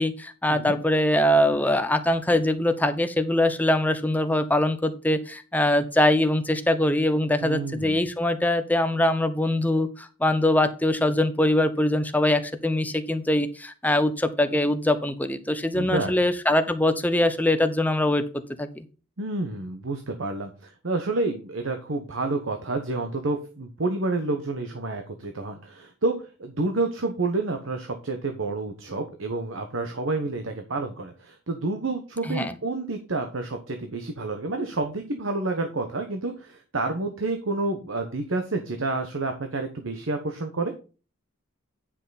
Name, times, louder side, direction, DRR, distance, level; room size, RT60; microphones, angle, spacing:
voice 1, 0.0-18.2 18.6-18.9 32.2-32.5, left 1 dB, 10° left, 9 dB, 0.7 m, -23 dB
voice 2, 7.4-8.0 15.7-16.2 19.2-26.1 26.4-40.7, right 3 dB, 70° right, 5 dB, 1.1 m, -29 dB
9.5 x 5.9 x 4.0 m, 0.35 s
head